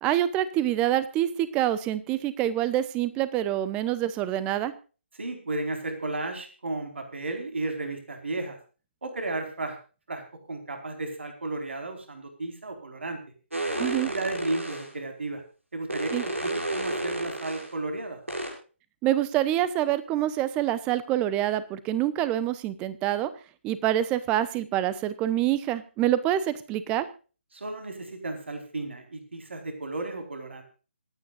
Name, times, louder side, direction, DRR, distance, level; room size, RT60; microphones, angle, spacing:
voice 1, 0.0-4.7 13.8-14.1 16.1-16.2 19.0-23.3 23.6-27.1, right 12 dB, 15° right, 15 dB, 0.9 m, -26 dB
voice 2, 5.2-8.6 9.0-9.8 10.1-10.2 10.5-13.2 13.7-15.4 15.7-16.1 16.4-18.2 27.5-30.6, right 2 dB, 65° right, 5 dB, 4.5 m, -34 dB
sound 1, 13.5-14.9 15.9-17.7 18.3-18.5, right 1 dB, 85° right, 6.5 m, -31 dB
26.5 x 9.6 x 2.5 m, 0.35 s
figure-of-eight pair, 150°, 7 cm